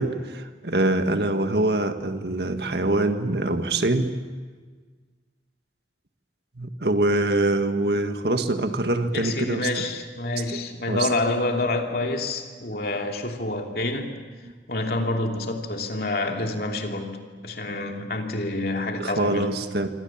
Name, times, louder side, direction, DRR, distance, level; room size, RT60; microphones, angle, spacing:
voice 1, 0.0-4.1 6.6-9.8 10.5-10.6 10.9-11.1 19.0-19.9, right 2 dB, 65° right, 1.8 m, -24 dB
voice 2, 9.1-14.1 14.7-19.6, left 2 dB, 55° left, 2.9 m, -27 dB
27.0 x 25.0 x 7.4 m
head